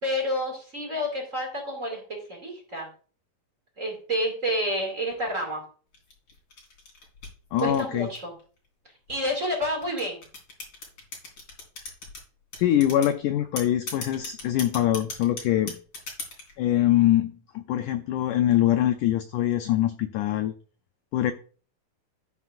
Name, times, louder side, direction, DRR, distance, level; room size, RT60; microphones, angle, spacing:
voice 1, 0.0-2.9 3.8-5.6 7.6-8.3 9.1-10.2, equal, 25° right, 1 dB, 2.1 m, -29 dB
sound 1, 5.9-8.4 9.1-12.2 12.5-13.1 13.6-16.5, left 3 dB, 35° left, 3.9 m, -38 dB
voice 2, 7.5-8.1 12.6-15.8 16.6-20.5 21.1-21.3, left 12 dB, 80° left, 9 dB, 1.8 m, -23 dB
12.0 x 9.4 x 2.5 m, 0.40 s
omnidirectional pair, 4.3 m